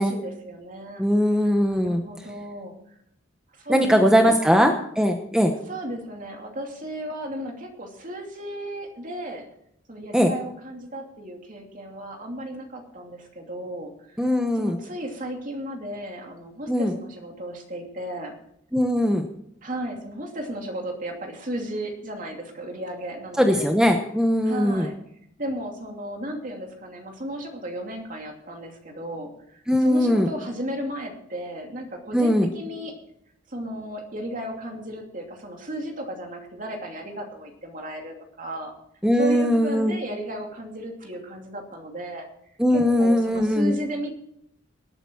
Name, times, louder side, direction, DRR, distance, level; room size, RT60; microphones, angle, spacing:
voice 1, 0.0-1.0 1.7-2.7 3.6-4.7 5.7-9.5 9.9-14.2 14.5-18.3 19.6-23.7 24.4-24.9 25.4-32.9 33.5-38.7 39.2-42.3 42.7-44.1, equal, 40° right, 2 dB, 2.7 m, -34 dB
voice 2, 1.0-2.0 3.7-5.5 10.1-10.3 14.2-14.8 16.7-16.9 18.7-19.3 23.4-24.9 29.7-30.3 32.1-32.5 39.0-39.9 42.6-43.7, equal, 5° right, 3 dB, 0.9 m, -20 dB
19.0 x 8.9 x 4.5 m, 0.72 s
head